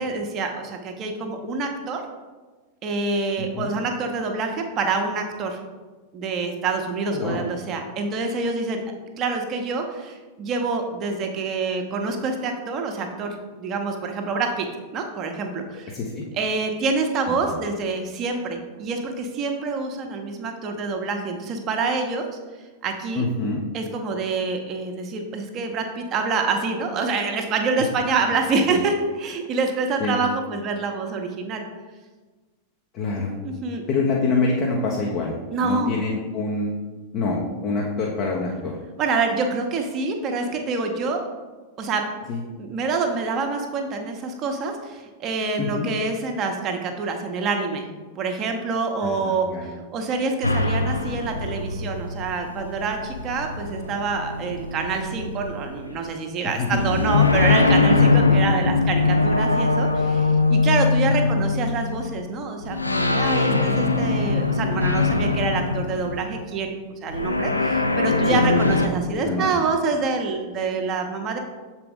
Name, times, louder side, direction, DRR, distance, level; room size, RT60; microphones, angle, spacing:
voice 1, 0.0-2.0 2.8-5.6 6.1-8.8 9.2-14.7 14.9-15.9 16.3-22.3 22.8-23.3 23.7-31.6 33.4-33.8 35.5-35.9 39.0-41.3 41.8-42.0 42.6-47.9 48.2-71.4, right 4 dB, 35° right, 4 dB, 0.9 m, -26 dB
voice 2, 3.4-3.7 7.1-7.4 15.9-16.2 17.3-17.5 23.1-23.6 28.7-28.8 30.0-30.2 32.9-33.4 33.9-35.3 35.6-36.8 37.1-38.8 42.3-42.4 45.6-45.9 49.0-49.7 56.4-56.9 57.9-58.1 61.2-61.3 68.3-68.6 69.2-69.6, left 3 dB, 35° left, -2 dB, 0.9 m, -26 dB
sound 1, 50.4-56.0 56.6-62.1 62.6-66.5 67.1-68.9, left 3 dB, 85° left, 0.4 m, -22 dB
6.8 x 4.4 x 3.7 m, 1.3 s
figure-of-eight pair, 90°, 0 cm